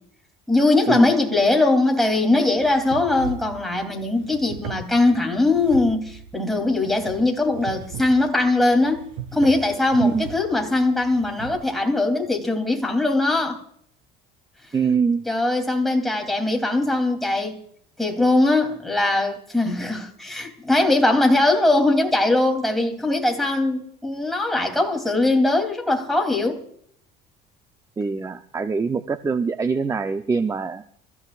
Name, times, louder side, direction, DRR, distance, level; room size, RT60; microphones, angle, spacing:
voice 1, 0.5-13.6 15.2-17.6 18.0-26.6, left 2 dB, ahead, 3.1 m, -21 dB
sound 1, 2.6-11.6, right 6 dB, 90° right, 5.1 m, -38 dB
voice 2, 14.7-15.3 28.0-30.8, right 5 dB, 15° right, 0.7 m, -23 dB
29.5 x 15.0 x 2.5 m
cardioid pair, 125°, 19 cm